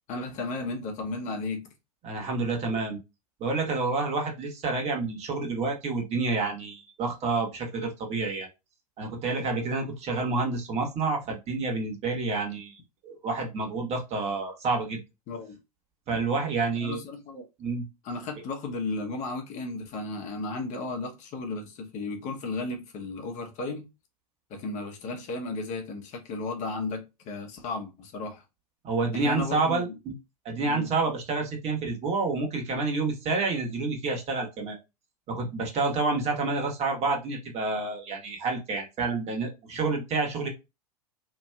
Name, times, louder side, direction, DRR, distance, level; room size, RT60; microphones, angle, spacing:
voice 1, 0.1-1.7 15.3-15.6 16.8-17.5 18.0-23.9 24.5-28.4 29.1-29.8 30.6-30.9, left 3 dB, 40° left, 0.9 m, -34 dB
voice 2, 2.0-3.0 3.4-8.5 9.0-15.0 16.1-17.0 17.6-17.8 28.8-30.1 30.4-34.8 35.3-40.5, right 3 dB, 35° right, 1.3 m, -29 dB
3.0 x 2.6 x 2.3 m
hypercardioid pair, 95°, 20 cm